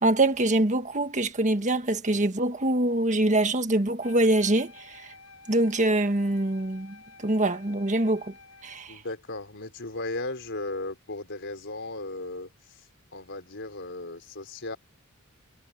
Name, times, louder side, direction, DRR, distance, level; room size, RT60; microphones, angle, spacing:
voice 1, 0.0-4.7 5.5-7.0 7.2-8.3 8.6-8.9, right 1 dB, 35° right, 1.6 m, -24 dB
Wind instrument woodwind instrument, 4.0-8.9, left 3 dB, 85° left, 6.5 m, -51 dB
voice 2, 8.9-12.8 13.1-14.8, left 2 dB, 55° left, 4.6 m, -36 dB
head